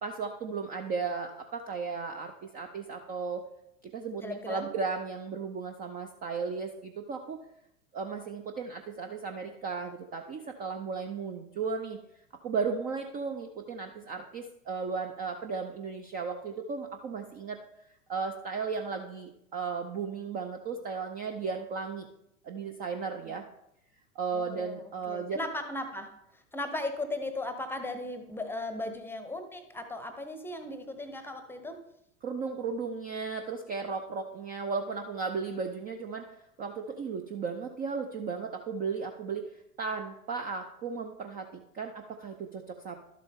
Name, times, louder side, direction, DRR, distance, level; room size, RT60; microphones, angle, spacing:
voice 1, 0.0-3.4 3.9-7.4 7.9-12.0 12.4-17.6 18.1-22.1 22.4-23.4 24.2-25.4 32.2-36.2 36.6-43.0, right 5 dB, 20° right, 5 dB, 0.5 m, -35 dB
voice 2, 4.2-4.7 23.2-23.3 24.3-31.8, left 2 dB, 5° left, 8 dB, 0.8 m, -37 dB
12.0 x 7.5 x 3.5 m, 0.81 s
figure-of-eight pair, 90°, 43 cm